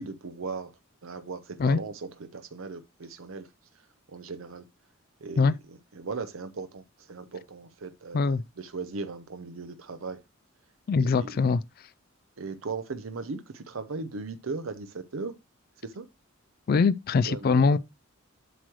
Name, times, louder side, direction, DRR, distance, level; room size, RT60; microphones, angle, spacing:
voice 1, 0.0-4.7 5.2-10.2 11.0-11.3 12.4-15.3 15.8-16.1 17.3-17.8, right 4 dB, 75° right, 0.7 m, -38 dB
voice 2, 10.9-11.6 16.7-17.8, left 4 dB, 45° left, 0.3 m, -22 dB
7.9 x 3.1 x 6.2 m
head